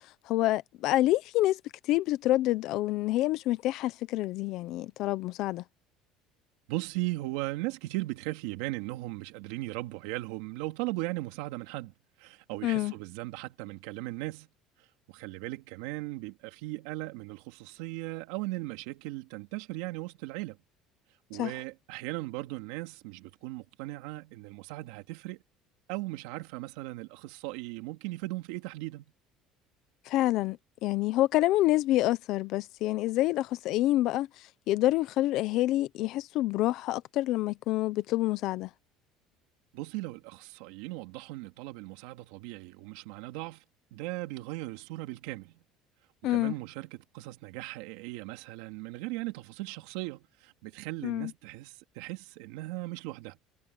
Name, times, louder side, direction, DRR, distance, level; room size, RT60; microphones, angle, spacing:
voice 1, 0.3-1.6 1.9-5.6 12.6-12.9 21.4-21.5 30.1-30.6 30.8-34.3 34.7-38.7 46.2-46.5 51.0-51.3, left 16 dB, 60° left, 1.0 m, -27 dB
voice 2, 6.7-11.9 12.2-14.5 15.1-20.6 21.3-25.4 25.9-29.1 39.7-43.6 43.9-45.5 46.2-53.4, right 19 dB, 90° right, 2.8 m, -38 dB
cardioid pair, 140°, 0 cm